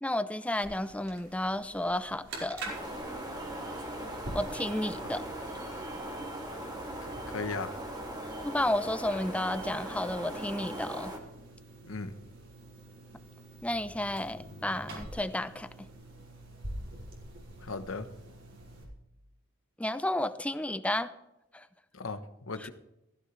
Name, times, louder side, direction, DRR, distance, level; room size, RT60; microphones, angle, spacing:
voice 1, 0.0-2.7 4.3-5.2 8.4-11.1 13.6-15.9 19.8-21.1 21.5-21.7 22.6-22.7, left 1 dB, 5° left, 12 dB, 0.6 m, -32 dB
sound 1, 0.6-18.8, right 1 dB, 60° right, 4.9 m, -47 dB
sound 2, 2.6-11.2, right 1 dB, 20° right, 2.5 m, -39 dB
voice 2, 7.0-7.7 11.8-12.1 17.6-18.1 21.9-22.7, left 3 dB, 75° left, 10 dB, 1.1 m, -37 dB
16.0 x 15.5 x 3.3 m, 0.88 s
head